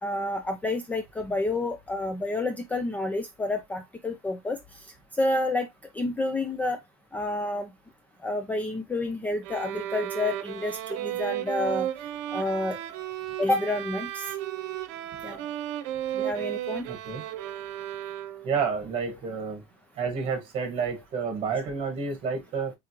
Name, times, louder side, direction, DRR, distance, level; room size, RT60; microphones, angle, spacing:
voice 1, 0.0-4.6 5.2-5.7 5.9-6.8 7.1-7.7 8.2-11.9 12.3-12.8 13.4-14.3 15.2-15.4 16.2-16.9, left 2 dB, 10° left, 0.3 m, -29 dB
sound 1, 9.4-18.6, right 12 dB, 85° right, 0.7 m, -34 dB
voice 2, 16.9-17.2 18.4-19.6 20.0-22.7, right 5 dB, 35° right, 1.5 m, -30 dB
4.8 x 3.7 x 2.9 m
cardioid pair, 175°, 16 cm